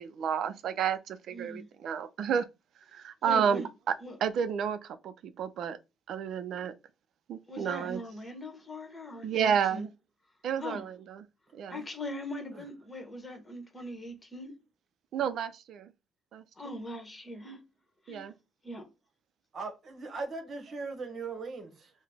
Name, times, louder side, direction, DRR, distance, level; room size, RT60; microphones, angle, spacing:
voice 1, 0.0-2.5 2.9-3.9 4.2-5.8 6.1-6.8 7.3-8.0 9.2-9.9 10.4-11.2 11.5-11.9 15.1-15.9 16.3-16.4 18.1-18.4, right 8 dB, 70° right, 0.4 m, -31 dB
voice 2, 1.3-1.7 3.2-3.7 4.0-4.2 7.5-9.9 10.6-10.8 11.7-14.5 16.6-17.6 18.1-18.2 18.6-18.9, left 1 dB, 20° left, 1.2 m, -40 dB
voice 3, 19.5-21.9, right 4 dB, 50° right, 1.0 m, -39 dB
3.8 x 2.1 x 3.4 m
cardioid pair, 90°, 0 cm